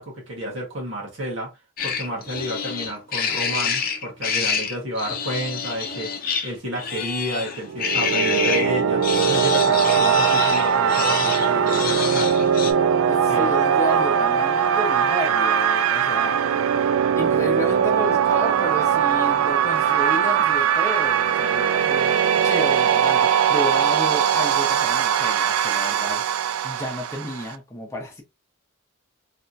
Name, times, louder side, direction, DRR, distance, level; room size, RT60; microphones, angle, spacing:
voice 1, 0.0-1.5 1.8-6.1 6.4-9.0 9.3-12.5 13.3-13.5, equal, 70° right, 1.5 m, -31 dB
sound 1, 1.8-8.7 9.0-12.7, left 6 dB, 45° left, 0.6 m, -27 dB
sound 2, 7.7-27.6, right 8 dB, 85° right, 0.3 m, -20 dB
voice 2, 13.1-16.9 17.1-26.3 26.6-28.2, left 1 dB, 15° left, 0.8 m, -32 dB
3.3 x 2.9 x 2.6 m
head